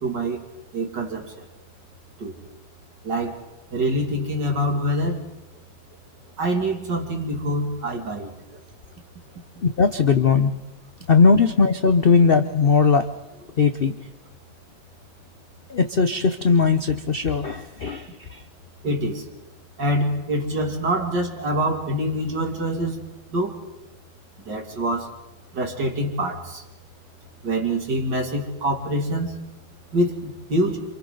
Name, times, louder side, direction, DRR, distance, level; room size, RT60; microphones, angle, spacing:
voice 1, 0.0-0.4 0.7-1.3 2.2-2.3 3.0-3.4 3.7-5.2 6.4-8.3 18.8-19.2 19.8-23.0 23.3-23.5 24.5-25.1 25.5-26.6 27.4-29.4 29.9-30.8, right 1 dB, 60° right, 2 dB, 3.3 m, -25 dB
voice 2, 9.6-10.5 11.1-13.1 13.6-13.9 15.7-18.4, left 5 dB, 55° left, 9 dB, 0.6 m, -19 dB
29.0 x 27.0 x 3.9 m, 0.99 s
omnidirectional pair, 2.1 m